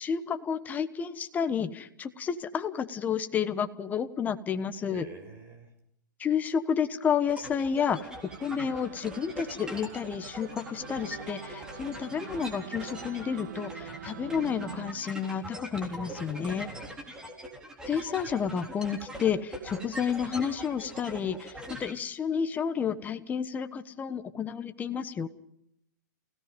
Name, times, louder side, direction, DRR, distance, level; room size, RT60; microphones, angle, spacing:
voice 1, 0.0-5.1 6.2-8.0 8.4-16.7 17.9-25.3, left 7 dB, 15° left, 10 dB, 1.2 m, -31 dB
voice 2, 4.8-5.7 15.9-17.0, right 3 dB, 25° right, 6 dB, 6.3 m, -47 dB
sound 1, 7.3-21.9, equal, 5° right, 3.6 m, -42 dB
sound 2, 8.1-14.9, right 7 dB, 60° right, 2.5 m, -45 dB
29.5 x 17.5 x 5.3 m, 0.75 s
hypercardioid pair, 140°, 11 cm